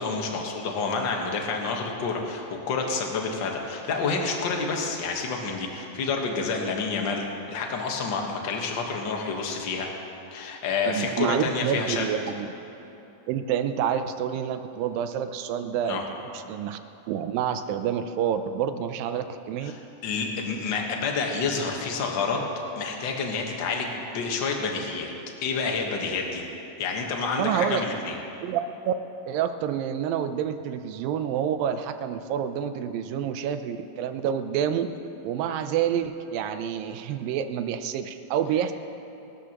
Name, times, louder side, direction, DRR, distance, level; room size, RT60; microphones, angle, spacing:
voice 1, 0.0-9.9 10.3-12.0 15.9-16.0 19.6-22.4 22.7-25.1 25.4-26.4 26.8-28.2, left 4 dB, 60° left, 1 dB, 1.2 m, -29 dB
voice 2, 10.8-12.5 13.3-16.0 16.3-16.8 17.1-19.7 27.4-27.9 28.4-28.9 29.3-34.9 35.2-38.7, right 9 dB, 80° right, 9 dB, 2.3 m, -28 dB
25.0 x 13.0 x 3.0 m, 3.0 s
omnidirectional pair, 4.1 m